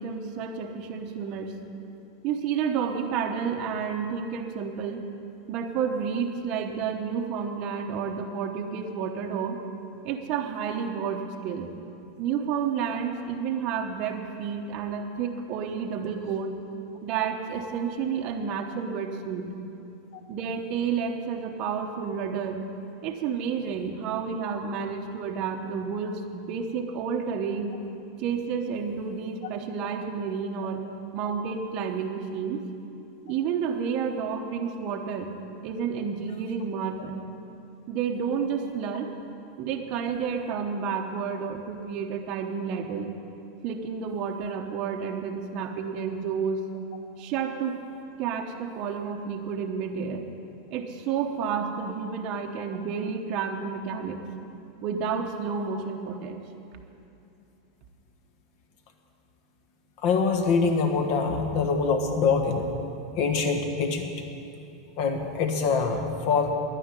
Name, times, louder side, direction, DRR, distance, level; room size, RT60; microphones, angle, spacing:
voice 1, 0.0-1.6 2.2-5.1 5.5-9.6 10.0-11.7 12.2-16.6 17.0-19.5 20.3-22.6 23.0-27.7 28.2-30.8 31.1-32.6 33.3-35.3 35.6-37.2 37.9-39.1 39.6-43.1 43.6-46.6 47.2-47.8 48.2-50.2 50.7-54.2 54.8-56.4, right 6 dB, 35° right, 2 dB, 0.9 m, -30 dB
voice 2, 60.0-62.7 63.2-64.1 65.0-66.5, left 5 dB, 45° left, 5 dB, 1.4 m, -24 dB
11.0 x 9.8 x 9.7 m, 2.7 s
supercardioid pair, 165°, 2 cm